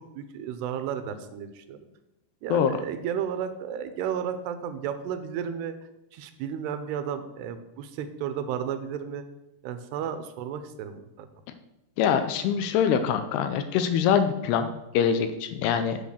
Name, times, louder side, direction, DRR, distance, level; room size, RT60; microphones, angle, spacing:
voice 1, 0.2-1.8 2.4-5.7 6.1-9.2 9.6-11.3, right 8 dB, 85° right, 10 dB, 2.7 m, -33 dB
voice 2, 12.0-16.0, left 8 dB, 85° left, 9 dB, 2.6 m, -24 dB
7.9 x 5.2 x 6.7 m, 0.90 s
omnidirectional pair, 4.8 m